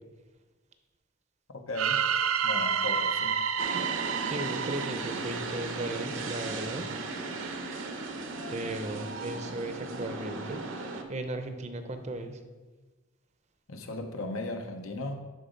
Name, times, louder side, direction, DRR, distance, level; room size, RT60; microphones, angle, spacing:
voice 1, 1.5-2.1 2.4-3.4 13.7-15.2, left 2 dB, 85° left, 5 dB, 1.0 m, -36 dB
sound 1, 1.7-5.8, right 7 dB, 85° right, 0.5 m, -29 dB
sound 2, 3.6-11.0, right 3 dB, 70° right, 0.9 m, -36 dB
voice 2, 4.2-6.9 8.5-10.6 11.1-12.4, right 1 dB, 35° right, 8 dB, 0.7 m, -36 dB
11.5 x 4.0 x 5.2 m, 1.3 s
head